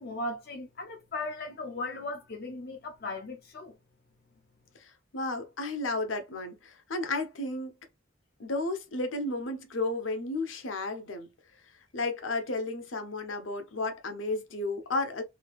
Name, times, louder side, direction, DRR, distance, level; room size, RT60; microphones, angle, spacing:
voice 1, 0.0-3.7, left 2 dB, 55° left, 0.6 m, -37 dB
voice 2, 4.8-7.7 8.4-11.3 11.9-15.2, left 2 dB, 85° left, 0.9 m, -33 dB
3.2 x 2.8 x 2.4 m
head